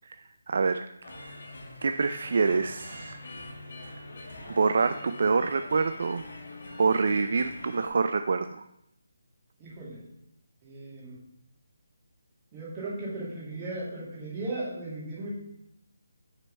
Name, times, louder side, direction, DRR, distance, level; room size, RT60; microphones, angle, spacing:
voice 1, 0.5-0.8 1.8-3.2 4.5-6.2 6.8-8.6, right 4 dB, 55° right, 9 dB, 0.3 m, -26 dB
sound 1, 1.0-7.9, left 1 dB, 50° left, 2.0 m, -44 dB
voice 2, 9.6-10.0 10.6-11.2 12.5-15.3, right 2 dB, 20° right, -6 dB, 2.4 m, -36 dB
6.6 x 4.5 x 5.3 m, 0.79 s
figure-of-eight pair, 165°, 0 cm